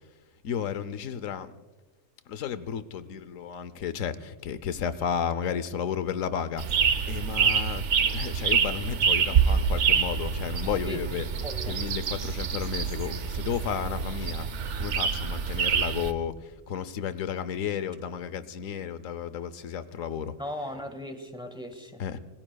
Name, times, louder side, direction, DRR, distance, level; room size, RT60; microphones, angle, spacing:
voice 1, 0.4-1.5 2.3-6.6 7.1-11.2 11.7-14.5 14.8-16.3 16.7-20.3 22.0-22.2, left 8 dB, 90° left, 14 dB, 1.1 m, -33 dB
sound 1, 6.6-16.1, right 6 dB, 65° right, 1.1 m, -26 dB
voice 2, 10.8-11.7 20.4-22.0, left 1 dB, 5° right, 6 dB, 1.6 m, -38 dB
26.0 x 20.5 x 2.3 m, 1.2 s
omnidirectional pair, 1.3 m